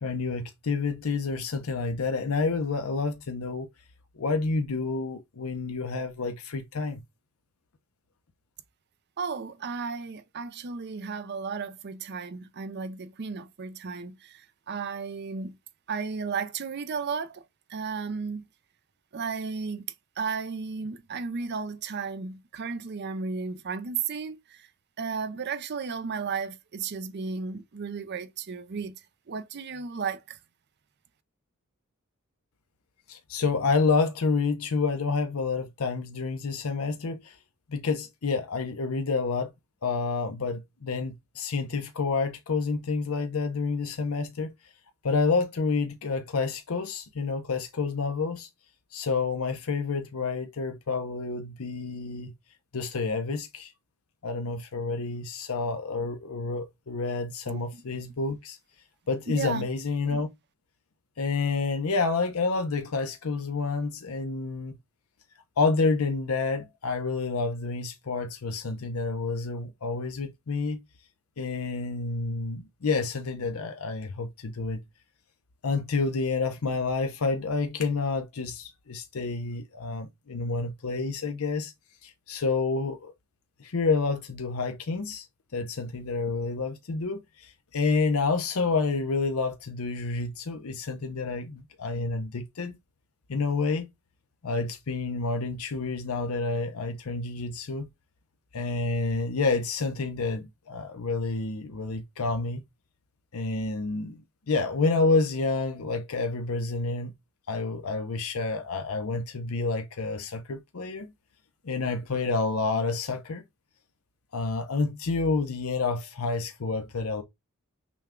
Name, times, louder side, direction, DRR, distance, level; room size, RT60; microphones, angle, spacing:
voice 1, 0.0-3.7 4.2-7.0 33.1-37.4 37.7-39.5 39.8-44.5 45.0-48.5 48.9-52.3 52.7-53.7 54.2-58.6 59.1-60.3 61.2-64.8 65.6-70.8 71.4-74.8 75.6-81.7 82.0-83.1 83.6-85.3 85.5-92.7 93.3-93.9 94.4-97.9 98.5-102.6 103.3-107.1 107.5-111.1 111.6-113.4 114.3-117.2, left 4 dB, 80° left, 0.7 m, -29 dB
voice 2, 9.2-15.6 15.9-17.4 17.7-18.4 19.1-19.8 20.2-24.7 25.0-29.0 29.3-30.4 57.5-57.6 59.3-59.7, right 5 dB, 50° right, 0.5 m, -34 dB
6.0 x 2.3 x 3.6 m
head